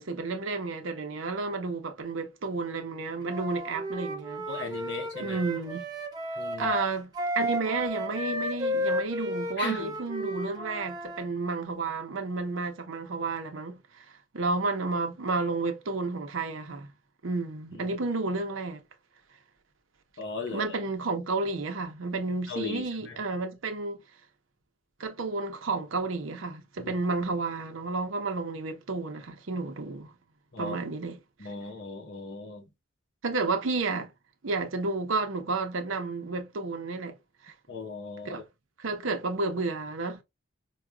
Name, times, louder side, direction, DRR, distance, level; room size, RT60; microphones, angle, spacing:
voice 1, 0.0-4.5 5.2-5.8 6.6-14.0 14.3-16.9 17.2-18.8 20.5-24.0 25.0-30.1 30.6-31.2 33.2-34.1 34.4-37.2 37.4-37.5 38.2-38.5 38.8-40.2, right 3 dB, 85° right, 0.7 m, -31 dB
Wind instrument woodwind instrument, 3.3-11.3, equal, 20° right, 0.6 m, -33 dB
voice 2, 4.5-5.4 6.4-6.7 9.6-9.9 20.2-20.7 22.5-23.2 26.8-26.9 30.5-30.8 31.4-32.7 37.7-38.4, left 3 dB, 60° left, 0.8 m, -37 dB
4.8 x 2.3 x 2.2 m
head